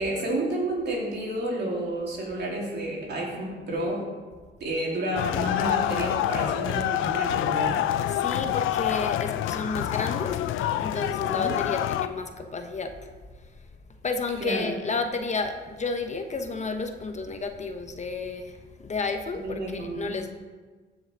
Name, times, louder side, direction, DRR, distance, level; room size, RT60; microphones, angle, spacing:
voice 1, 0.0-4.0 4.6-7.9 11.2-11.6 14.4-14.8 19.4-20.2, right 1 dB, 60° right, -2 dB, 3.5 m, -30 dB
sound 1, 5.2-12.1, left 12 dB, 85° left, 0.5 m, -27 dB
voice 2, 8.1-13.5 14.0-20.3, left 3 dB, 35° left, 6 dB, 1.1 m, -32 dB
15.0 x 6.5 x 4.8 m, 1.4 s
cardioid pair, 90°, 20 cm